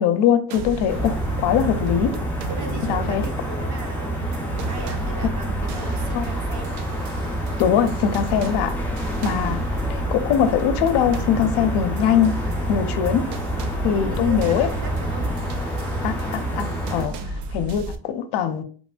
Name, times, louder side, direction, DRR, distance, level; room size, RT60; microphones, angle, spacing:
voice 1, 0.0-2.2 2.9-3.2 6.1-6.3 7.6-8.8 9.2-12.4 12.7-13.3 13.8-14.7 16.0-17.1 17.5-18.6, left 8 dB, 80° left, 0.5 m, -22 dB
sound 1, 0.5-18.0, right 2 dB, 85° right, 0.5 m, -34 dB
sound 2, 0.9-17.1, right 1 dB, 5° left, 0.3 m, -27 dB
voice 2, 2.5-6.8 9.0-9.4 13.9-15.3 17.0-17.4, right 5 dB, 45° right, 0.7 m, -37 dB
3.1 x 2.4 x 2.2 m
cardioid pair, 150°, 40 cm